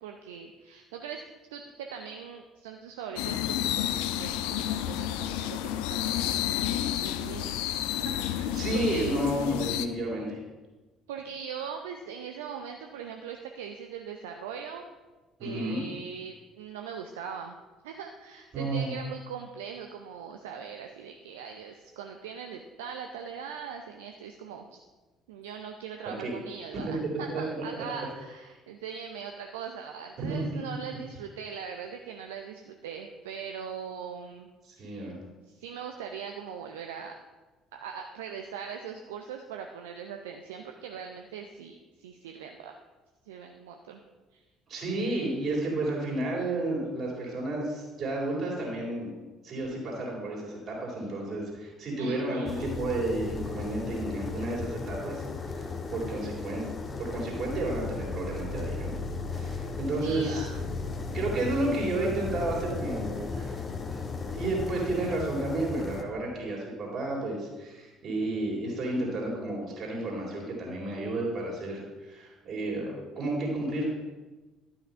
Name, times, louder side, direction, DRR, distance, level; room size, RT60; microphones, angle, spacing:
voice 1, 0.0-1.2 1.5-3.9 4.2-7.5 8.0-9.2 11.1-14.8 15.4-17.6 17.8-24.8 25.3-34.5 34.8-35.1 35.5-37.1 37.7-42.8 43.3-44.0 44.3-44.4 52.0-52.7 60.0-60.7 61.2-61.3, right 7 dB, 70° right, 4 dB, 0.6 m, -41 dB
sound 1, 3.2-9.9, left 11 dB, 65° left, 0.4 m, -30 dB
voice 2, 8.5-10.4 15.4-15.8 18.5-18.9 26.2-26.3 26.9-27.0 27.3-27.4 30.2-30.4 34.8-35.2 44.7-49.1 49.4-56.7 57.0-59.0 59.3-60.5 61.1-63.6 63.9-64.0 64.3-73.9, right 2 dB, 45° right, -2 dB, 3.7 m, -31 dB
sound 2, 52.5-66.0, left 4 dB, 30° left, 0.9 m, -35 dB
11.5 x 5.9 x 5.5 m, 1.2 s
figure-of-eight pair, 50°, 0 cm